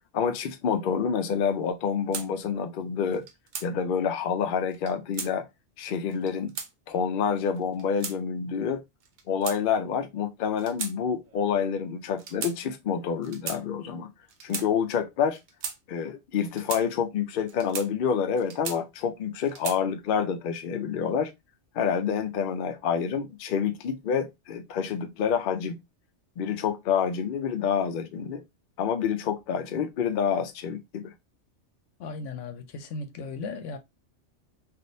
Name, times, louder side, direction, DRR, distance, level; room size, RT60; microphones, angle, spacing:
voice 1, 0.1-3.3 3.6-5.5 5.8-6.6 6.9-8.8 9.3-14.1 14.4-15.4 15.9-21.3 21.7-25.8 26.4-28.4 28.8-31.1, left 7 dB, 60° left, 0.6 m, -28 dB
sound 1, 2.1-2.3 3.1-3.7 4.7-5.3 6.1-6.7 7.6-8.2 9.0-9.9 10.6-10.9 11.2-11.4 12.2-12.6 13.2-13.6 14.3-14.7 15.3-15.8 16.4-16.8 17.5-17.9 18.4-19.0 19.5-19.8, right 6 dB, 50° right, 0.6 m, -36 dB
voice 2, 32.0-33.8, left 3 dB, 80° left, 1.0 m, -36 dB
3.5 x 2.4 x 2.6 m
omnidirectional pair, 1.2 m